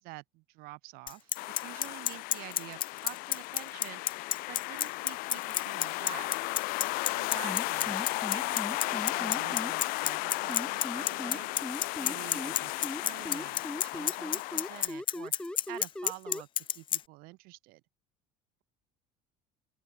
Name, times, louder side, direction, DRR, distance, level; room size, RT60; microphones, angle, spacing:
voice 1, 0.0-4.2 4.5-6.3 7.1-8.0 8.3-11.5 12.0-15.3 15.7-17.8, right 24 dB, 75° right, 4.9 m, -48 dB
Bicycle, 1.1-17.0, left 9 dB, 35° left, 0.4 m, -29 dB
sound 1, 1.4-14.9, left 24 dB, 70° left, 0.7 m, -35 dB
sound 2, 7.4-9.7 10.5-12.5 12.8-16.4, left 1 dB, 5° left, 1.6 m, -38 dB
open air
supercardioid pair, 105°, 15 cm